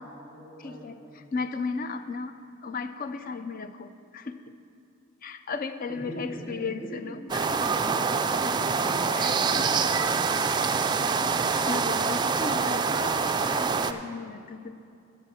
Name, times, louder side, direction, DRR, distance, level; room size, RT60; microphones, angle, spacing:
voice 1, 0.0-1.3 5.9-7.3 7.5-8.4 8.8-9.6, right 1 dB, 10° left, -8 dB, 3.1 m, -41 dB
voice 2, 0.6-4.4 5.2-7.5 9.2-9.9 10.5-10.7 11.0-14.7, left 4 dB, 45° left, 10 dB, 0.5 m, -36 dB
sound 1, 7.3-13.9, right 5 dB, 20° right, 0.3 m, -25 dB
14.0 x 5.2 x 7.1 m, 2.5 s
head